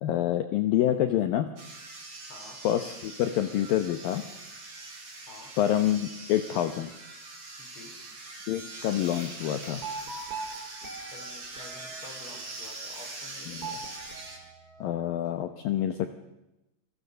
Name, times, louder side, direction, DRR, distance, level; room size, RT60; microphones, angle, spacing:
voice 1, 0.0-1.5 2.6-4.2 5.6-6.9 8.5-9.8 13.5-13.7 14.8-16.1, left 12 dB, 85° left, 9 dB, 2.0 m, -27 dB
sound 1, 1.6-14.4, right 3 dB, 35° right, 6.1 m, -43 dB
voice 2, 2.3-2.6 5.3-5.6 7.6-8.1 11.1-13.9, left 2 dB, 30° left, 5 dB, 4.4 m, -49 dB
sound 2, 9.8-12.5 13.6-15.3, right 4 dB, 20° right, 4.0 m, -41 dB
29.0 x 22.0 x 6.8 m, 0.95 s
omnidirectional pair, 5.5 m